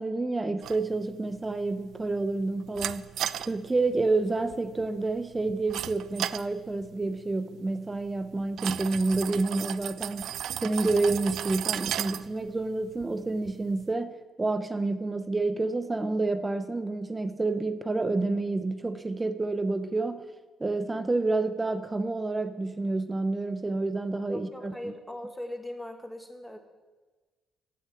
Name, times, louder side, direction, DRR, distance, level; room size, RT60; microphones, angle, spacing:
voice 1, 0.0-3.1 3.4-10.3 10.6-20.2 20.6-24.7, right 3 dB, 20° right, 10 dB, 0.8 m, -29 dB
sound 1, 0.6-13.9, right 11 dB, 75° right, 0.4 m, -38 dB
voice 2, 24.3-26.6, left 1 dB, 5° left, 5 dB, 1.8 m, -39 dB
16.0 x 6.4 x 7.5 m, 1.3 s
cardioid pair, 90°, 0 cm